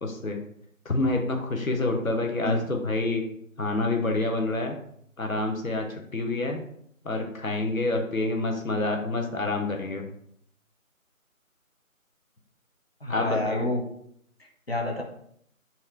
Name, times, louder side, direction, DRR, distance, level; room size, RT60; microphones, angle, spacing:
voice 1, 0.0-0.4 0.8-3.3 3.6-4.8 5.2-6.6 7.0-10.1 13.1-13.7, left 2 dB, 75° left, 3 dB, 1.0 m, -27 dB
voice 2, 13.0-13.8 14.4-15.0, left 1 dB, 45° left, 2 dB, 0.8 m, -29 dB
4.2 x 2.5 x 4.6 m, 0.68 s
figure-of-eight pair, 165°, 42 cm